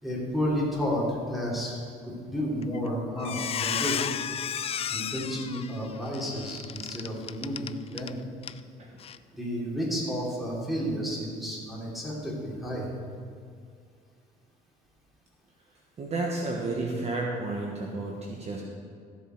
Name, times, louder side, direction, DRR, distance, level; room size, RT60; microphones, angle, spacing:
voice 1, 0.0-4.0 4.9-8.2 9.3-12.9, equal, ahead, -5 dB, 3.4 m, -31 dB
Squeak, 2.6-2.9 3.2-8.1 8.4-8.6 9.0-9.2, left 8 dB, 35° left, 0.4 m, -33 dB
voice 2, 16.0-18.6, right 2 dB, 40° right, -1 dB, 1.4 m, -31 dB
15.0 x 7.4 x 4.6 m, 2.2 s
cardioid pair, 110°, 17 cm